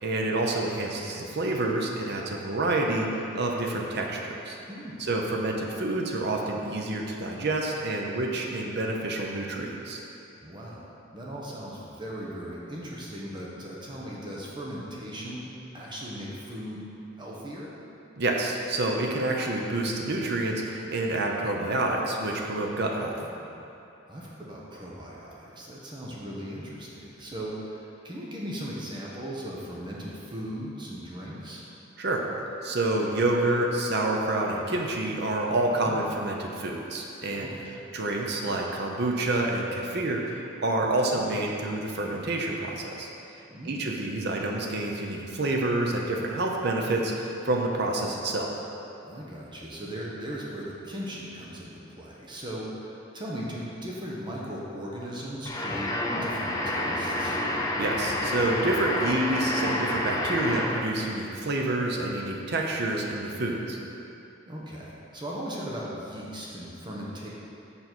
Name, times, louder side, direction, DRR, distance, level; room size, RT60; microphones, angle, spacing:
voice 1, 0.0-4.6 5.0-10.0 18.2-23.1 32.0-32.2 32.6-37.5 37.9-43.1 43.6-48.5 57.8-63.8, right 2 dB, 60° right, 0 dB, 0.8 m, -28 dB
voice 2, 4.7-5.1 10.3-16.8 17.2-17.7 23.1-23.7 24.1-31.6 35.7-36.0 37.4-37.8 41.0-41.3 43.5-43.9 49.0-56.0 56.2-57.4 64.5-67.3, equal, 25° right, -5 dB, 1.0 m, -38 dB
sound 1, 55.5-61.0, left 1 dB, 20° left, 0.6 m, -29 dB
7.0 x 4.1 x 6.1 m, 2.7 s
head